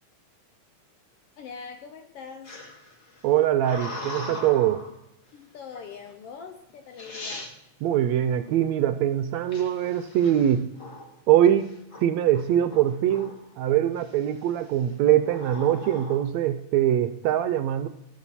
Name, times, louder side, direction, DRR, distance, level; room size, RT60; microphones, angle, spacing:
voice 1, 1.4-2.5 5.3-7.5, left 6 dB, 70° left, 6 dB, 1.5 m, -42 dB
sound 1, 2.4-5.0 5.7-6.1 6.7-6.8 7.0-7.5 9.5-11.2 11.6-12.0 12.3-13.5 14.0-14.4 15.2-16.3, left 2 dB, 35° left, 1.4 m, -40 dB
voice 2, 3.2-4.8 7.8-10.7 11.3-11.7 12.0-13.3 13.6-17.9, right 11 dB, 80° right, 11 dB, 1.7 m, -22 dB
18.0 x 6.6 x 4.2 m, 0.85 s
omnidirectional pair, 3.5 m